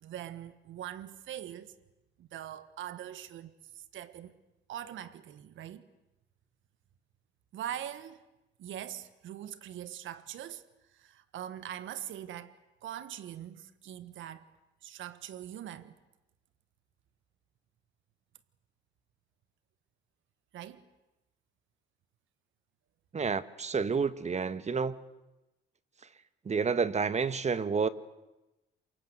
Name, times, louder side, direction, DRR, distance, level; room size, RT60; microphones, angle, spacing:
voice 1, 0.0-1.7 2.2-4.3 4.7-5.9 7.5-8.2 8.6-14.5 14.8-15.9 20.5-20.9, right 11 dB, 80° right, 1.5 m, -42 dB
voice 2, 23.1-25.0 26.4-27.9, right 5 dB, 35° right, 1.4 m, -29 dB
28.0 x 25.0 x 8.2 m
cardioid pair, 90°, 20 cm